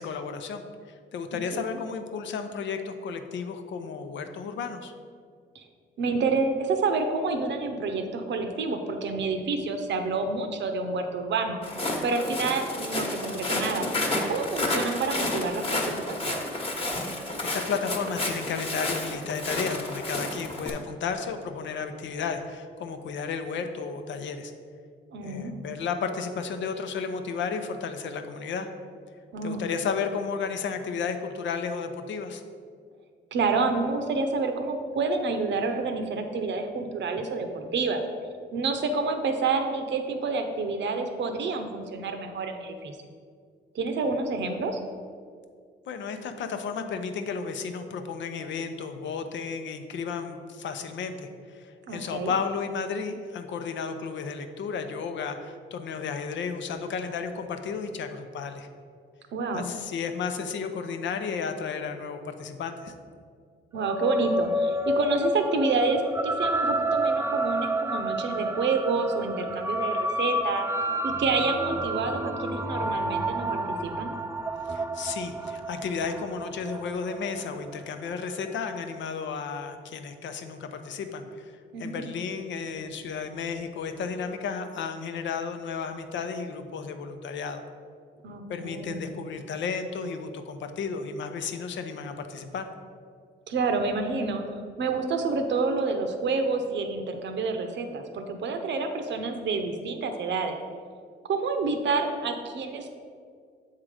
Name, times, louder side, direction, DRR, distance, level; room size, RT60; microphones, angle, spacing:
voice 1, 0.0-4.9 17.5-24.5 25.2-28.7 29.4-32.4 45.9-58.7 59.5-62.9 74.7-81.5 81.8-87.6 88.5-92.7, left 5 dB, 70° left, 7 dB, 0.6 m, -33 dB
voice 2, 6.0-11.6 12.0-13.9 14.3-16.4 25.1-25.5 29.3-29.6 33.3-38.0 38.5-43.0 43.7-44.8 51.9-52.3 59.3-59.7 63.7-70.7 71.0-74.1 81.7-82.0 88.2-89.0 93.5-94.4 94.8-100.6 101.3-102.9, right 4 dB, 65° right, 6 dB, 0.8 m, -28 dB
Walk footsteps, 11.6-20.7, left 1 dB, 30° left, 1.2 m, -30 dB
sound 1, 63.8-78.5, right 1 dB, 15° right, 0.4 m, -30 dB
7.5 x 3.8 x 4.9 m, 2.1 s
cardioid pair, 75°, 20 cm